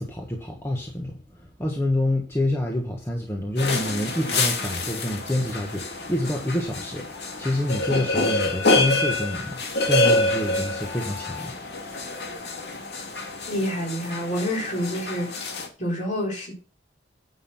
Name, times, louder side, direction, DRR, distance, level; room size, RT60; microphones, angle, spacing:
voice 1, 0.0-9.6 9.9-11.6, left 1 dB, 15° left, 1.4 m, -27 dB
sound 1, 3.6-15.7, left 2 dB, 65° left, 2.2 m, -27 dB
voice 2, 13.5-15.3 15.8-16.5, equal, 40° left, 4.3 m, -27 dB
9.9 x 6.2 x 5.7 m
head